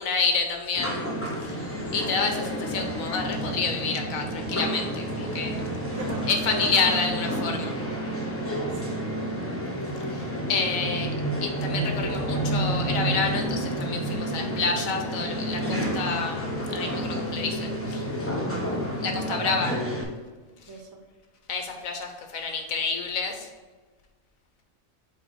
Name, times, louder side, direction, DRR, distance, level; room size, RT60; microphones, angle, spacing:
voice 1, 0.0-1.7 1.9-5.6 6.3-7.7 10.0-11.1 11.4-18.3 19.0-19.7 20.6-20.7 21.5-23.5, left 4 dB, 75° left, 3 dB, 1.3 m, -29 dB
sound 1, 0.8-20.0, right 1 dB, 10° left, 0.9 m, -30 dB
voice 2, 5.9-6.7 8.7-9.0 10.6-11.3 19.0-19.6 20.7-20.9, right 4 dB, 75° right, 3 dB, 1.3 m, -38 dB
5.4 x 4.3 x 4.3 m, 1.3 s
omnidirectional pair, 1.4 m